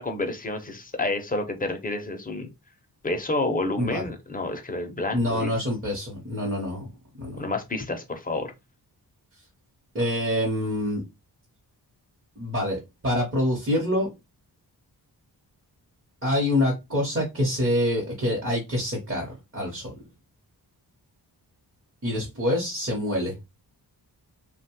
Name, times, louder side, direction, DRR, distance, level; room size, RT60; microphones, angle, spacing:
voice 1, 0.0-2.5 3.0-5.5 7.4-8.5, left 2 dB, 20° left, 0.6 m, -29 dB
voice 2, 3.8-4.1 5.1-6.9 7.2-7.4 9.9-11.0 12.4-14.1 16.2-20.0 22.0-23.4, left 1 dB, 35° right, 0.9 m, -26 dB
2.9 x 2.2 x 2.9 m
wide cardioid pair, 130°, 39 cm